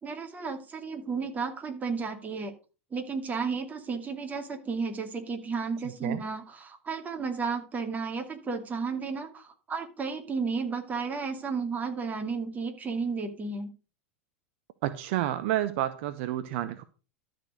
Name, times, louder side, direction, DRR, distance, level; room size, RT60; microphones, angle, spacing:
voice 1, 0.0-2.5 2.9-13.7, right 5 dB, 20° right, 5 dB, 2.4 m, -33 dB
voice 2, 14.8-16.8, right 13 dB, 60° right, 11 dB, 0.8 m, -30 dB
12.5 x 4.5 x 6.5 m, 0.34 s
hypercardioid pair, 90°, 7 cm